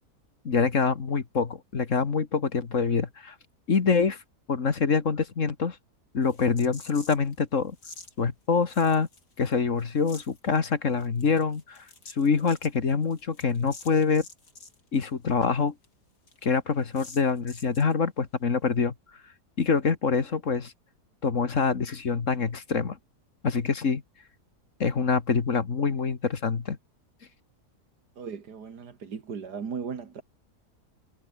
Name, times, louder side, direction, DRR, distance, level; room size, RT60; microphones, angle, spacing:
voice 1, 0.5-3.3 3.7-4.2 4.5-5.8 6.1-7.8 8.2-9.1 9.4-14.3 14.9-15.7 16.4-18.9 19.6-20.7 21.2-23.0 23.4-24.0 24.8-26.8, left 5 dB, 50° left, 2.0 m, -25 dB
sound 1, 6.2-7.3 7.8-8.1 8.7-9.5 9.8-10.4 11.0-14.8 15.1-15.2 15.4-15.5 15.8-15.9 16.3-16.4 16.9-17.9, left 3 dB, 90° left, 4.7 m, -48 dB
voice 2, 28.2-30.2, right 6 dB, 80° right, 2.6 m, -37 dB
omnidirectional pair, 1.7 m